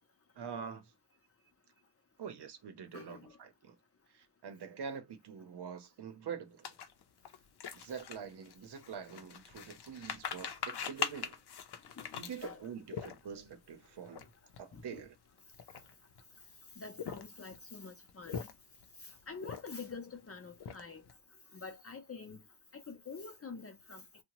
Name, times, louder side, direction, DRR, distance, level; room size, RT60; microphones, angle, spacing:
voice 1, 0.4-0.9 2.2-3.8 4.1-6.6 7.7-11.4 12.1-14.2 14.6-15.1, right 7 dB, 80° right, 0.7 m, -45 dB
voice 2, 2.9-3.4 12.0-12.1 12.4-12.6 14.7-15.0 16.8-18.5 19.0-21.0 21.5-22.4 22.7-24.0, left 4 dB, 35° left, 0.6 m, -47 dB
sound 1, 6.6-13.5 14.1-14.2 14.5-14.7 15.4-16.2 16.8-17.6 18.1-18.8 19.4-20.0 20.3-21.1, left 7 dB, 75° left, 0.6 m, -42 dB
2.7 x 2.1 x 2.9 m
wide cardioid pair, 110°, 40 cm